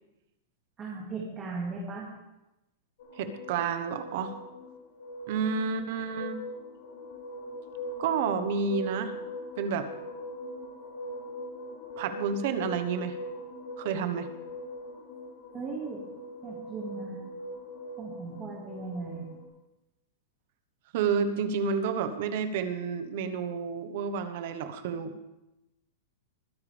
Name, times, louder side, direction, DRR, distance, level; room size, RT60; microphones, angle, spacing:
voice 1, 0.8-2.1 15.5-16.0 16.4-17.2 18.0-19.3, right 4 dB, 20° right, -4 dB, 2.2 m, -37 dB
sound 1, 3.0-19.5, left 1 dB, 60° left, 4.9 m, -41 dB
voice 2, 3.2-4.3 5.3-6.4 8.0-9.1 9.6-9.9 12.0-13.2 13.8-14.3 20.9-25.3, right 6 dB, 50° right, 9 dB, 1.2 m, -30 dB
21.5 x 10.5 x 3.5 m, 0.96 s
supercardioid pair, 170°, 0 cm